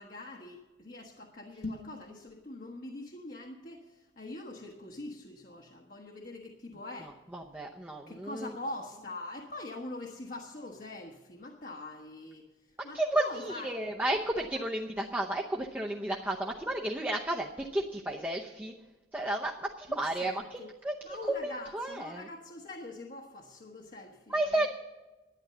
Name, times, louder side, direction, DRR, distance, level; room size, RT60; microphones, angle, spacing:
voice 1, 0.0-7.2 8.1-13.9 19.9-20.7 21.0-24.7, left 2 dB, 50° left, 0 dB, 1.2 m, -44 dB
sound 1, 1.5-2.0, left 2 dB, 80° left, 1.6 m, -39 dB
voice 2, 7.3-8.5 12.9-18.7 19.1-21.2 21.4-22.2 24.3-24.7, right 1 dB, 10° right, -1 dB, 0.7 m, -32 dB
11.5 x 9.7 x 6.8 m, 1.2 s
head